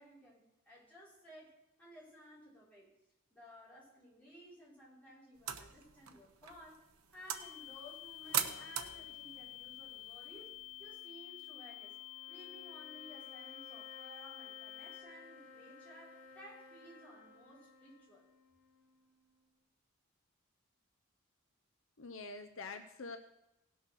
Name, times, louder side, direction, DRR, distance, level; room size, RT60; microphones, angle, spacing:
voice 1, 0.0-2.9 3.3-6.8 7.1-10.5 10.8-12.0 12.3-18.3, equal, 5° left, -8 dB, 5.7 m, -57 dB
sound 1, 5.3-10.9, right 9 dB, 80° right, 1.0 m, -43 dB
sound 2, 7.3-15.0, left 16 dB, 25° left, 3.0 m, -50 dB
sound 3, 10.3-19.7, left 3 dB, 40° left, 3.0 m, -58 dB
voice 2, 22.0-23.2, left 3 dB, 65° left, 7 dB, 0.8 m, -45 dB
17.5 x 6.4 x 6.2 m, 0.90 s
head